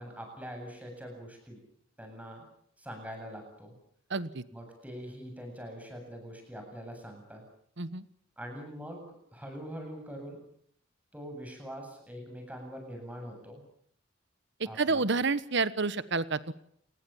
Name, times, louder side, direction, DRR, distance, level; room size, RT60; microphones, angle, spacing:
voice 1, 0.0-1.6 2.0-2.4 2.8-3.7 4.5-7.4 8.4-10.4 11.1-13.6 14.6-15.1, equal, 10° right, 3 dB, 8.0 m, -43 dB
voice 2, 4.1-4.4 7.8-8.0 14.8-16.5, right 4 dB, 60° right, 15 dB, 1.2 m, -29 dB
29.0 x 20.0 x 7.2 m, 0.67 s
head